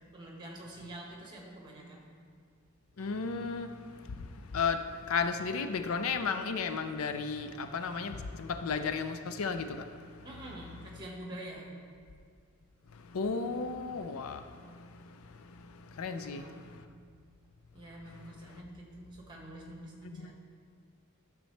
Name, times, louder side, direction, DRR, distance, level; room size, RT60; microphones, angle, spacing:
voice 1, 0.1-2.0 10.2-11.8 15.9-17.1 17.7-20.3, right 1 dB, 20° right, -2 dB, 1.5 m, -47 dB
voice 2, 3.0-3.8 4.1-9.9 10.2-10.3 13.1-16.8 18.5-18.6 20.0-20.3, left 5 dB, 75° left, 9 dB, 0.5 m, -34 dB
12.0 x 6.6 x 3.3 m, 2.1 s
head